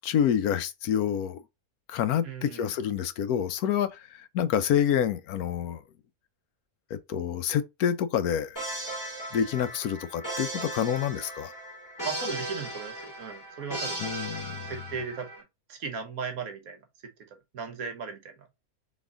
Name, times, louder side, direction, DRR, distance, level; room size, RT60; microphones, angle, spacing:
voice 1, 0.0-1.4 1.9-5.8 6.9-8.6 9.3-11.5 14.0-14.7, left 9 dB, 90° left, 1.2 m, -28 dB
voice 2, 2.2-2.7 12.0-14.0 14.6-15.3 15.7-16.8 17.5-18.5, right 5 dB, 75° right, 1.5 m, -36 dB
sound 1, 8.6-15.4, right 1 dB, 10° left, 2.2 m, -37 dB
4.1 x 3.5 x 3.6 m
omnidirectional pair, 1.5 m